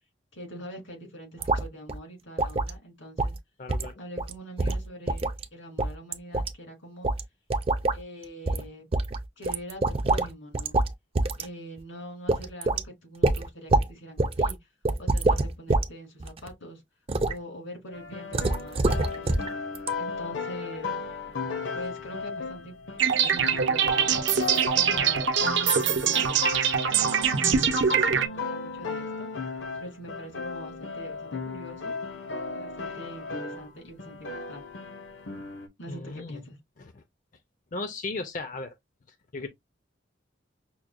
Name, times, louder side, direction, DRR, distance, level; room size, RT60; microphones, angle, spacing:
voice 1, 0.3-3.3 4.0-7.1 7.9-8.9 9.4-10.7 11.4-14.6 15.0-16.8 17.2-19.4 20.0-21.0 21.7-22.7 23.0-24.1 24.5-26.5 26.9-27.6 27.9-28.0 28.3-29.4 29.7-32.0 32.5-34.6 35.8-36.6, equal, 90° left, 2.7 m, -43 dB
sound 1, 1.4-1.6 1.9-2.0 2.4-2.7 3.2-3.4 3.7-3.9 4.2-4.3 4.6-5.4 5.8-6.5 7.0-7.2 7.5-8.0 8.5-8.6 8.9-10.3 10.5-10.9 11.1-11.4 11.8-11.9 12.3-12.8 13.2-13.9 14.2-14.5 14.8-15.9 16.2-16.5 17.1-17.3 18.3-19.5 19.7-19.9, right 2 dB, 30° right, 0.4 m, -25 dB
voice 2, 3.6-3.9 35.9-36.4 36.9-37.0 37.7-38.7 39.3-39.5, left 3 dB, 40° left, 0.5 m, -35 dB
sound 2, 17.9-33.7 34.0-35.7, left 4 dB, 70° left, 0.8 m, -35 dB
sound 3, 23.0-28.3, right 7 dB, 70° right, 0.7 m, -23 dB
5.8 x 2.1 x 2.5 m
head